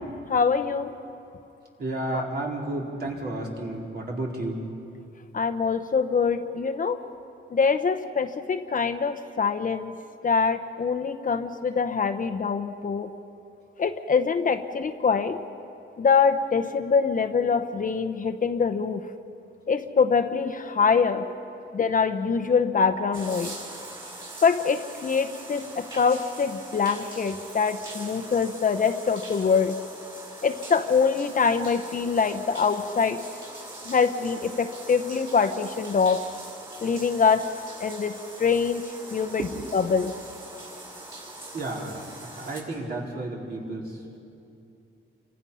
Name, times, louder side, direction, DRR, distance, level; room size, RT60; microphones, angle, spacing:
voice 1, 0.3-0.9 2.1-2.2 5.3-7.0 7.5-9.9 10.2-13.1 13.8-15.4 16.0-19.0 19.7-21.2 21.7-23.5 24.4-29.8 30.4-33.2 33.8-36.3 36.8-37.5 37.8-39.5 39.7-40.1, left 5 dB, 40° left, 8 dB, 0.9 m, -24 dB
voice 2, 1.8-4.6 39.4-39.5 41.5-44.2, right 2 dB, 50° right, -2 dB, 4.5 m, -32 dB
sound 1, 23.1-42.6, right 2 dB, 25° right, 6.5 m, -42 dB
29.0 x 25.0 x 5.7 m, 2.7 s
wide cardioid pair, 150°, 21 cm